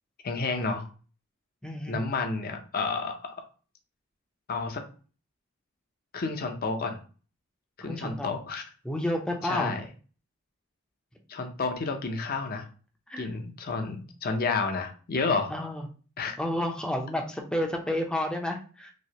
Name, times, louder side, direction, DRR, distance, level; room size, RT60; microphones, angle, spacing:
voice 1, 0.2-0.9 1.9-3.4 4.5-4.8 6.1-7.0 7.8-8.6 9.4-9.9 11.3-12.7 13.2-15.5 16.2-16.4, left 4 dB, 45° left, 4 dB, 0.6 m, -30 dB
voice 2, 1.6-2.0 7.8-8.4 8.8-9.7 13.1-13.3 15.5-15.9 16.4-18.9, left 1 dB, 5° left, 2 dB, 0.5 m, -30 dB
3.1 x 2.7 x 2.8 m, 0.38 s
head